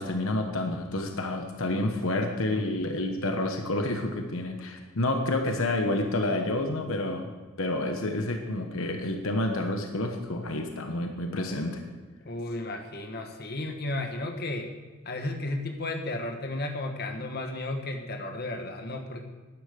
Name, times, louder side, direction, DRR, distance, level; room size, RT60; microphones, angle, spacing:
voice 1, 0.0-11.9, left 1 dB, 65° left, 4 dB, 1.2 m, -29 dB
voice 2, 12.2-14.7 15.0-19.2, left 2 dB, 45° left, 4 dB, 1.4 m, -33 dB
12.0 x 10.5 x 6.7 m, 1.3 s
head